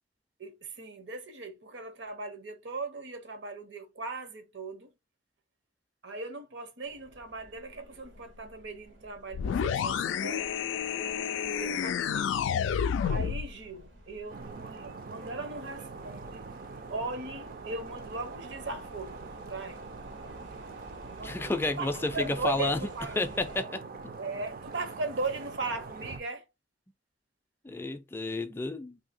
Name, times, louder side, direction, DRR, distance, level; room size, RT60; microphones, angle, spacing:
voice 1, 0.4-4.9 6.0-10.5 11.0-12.3 13.0-16.4 16.9-19.2 19.5-19.9 21.1-23.4 24.2-26.5, right 3 dB, 70° right, 0.8 m, -38 dB
sound 1, 6.8-23.6, right 1 dB, 90° right, 1.1 m, -52 dB
sound 2, 9.3-13.5, left 7 dB, 85° left, 0.3 m, -30 dB
sound 3, 14.3-26.2, right 4 dB, 50° right, 0.4 m, -44 dB
voice 2, 21.2-22.8 23.2-23.8 27.6-29.0, left 2 dB, 10° left, 0.4 m, -31 dB
2.7 x 2.7 x 4.1 m
head